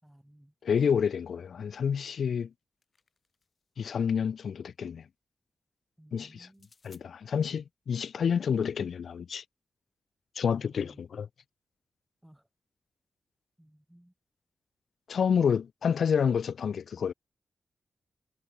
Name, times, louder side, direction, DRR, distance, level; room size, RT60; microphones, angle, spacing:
voice 1, 0.0-0.5 6.0-6.7 10.7-11.1 12.2-12.5 13.6-14.1, right 1 dB, 5° right, 6.5 m, -57 dB
voice 2, 0.6-2.5 3.8-5.0 6.1-6.5 6.8-9.4 10.4-11.3 15.1-17.1, left 7 dB, 75° left, 0.9 m, -28 dB
sound 1, 2.4-3.7 6.5-7.1, left 4 dB, 35° left, 3.6 m, -62 dB
wide cardioid pair, 130°, 0 cm